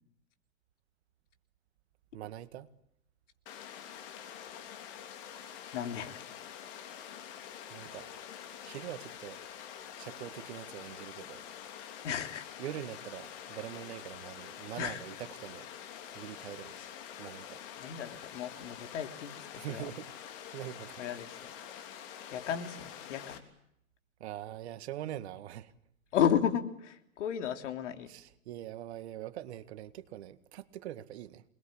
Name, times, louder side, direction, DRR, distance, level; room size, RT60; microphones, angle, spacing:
voice 1, 2.1-2.7 7.7-8.1 8.6-9.4 10.0-11.4 12.6-15.7 16.1-16.9 17.2-17.6 19.6-20.1 20.5-21.0 24.2-25.7 28.1-31.4, right 12 dB, 50° right, 1.9 m, -43 dB
Water, 3.5-23.4, left 9 dB, 40° left, 3.4 m, -46 dB
voice 2, 5.7-6.2 12.0-12.4 14.8-15.0 16.7-16.9 17.8-19.8 21.0-21.5 22.3-23.4 26.1-28.1, left 9 dB, 55° left, 3.2 m, -33 dB
28.0 x 21.0 x 8.8 m
hypercardioid pair, 140°, 42 cm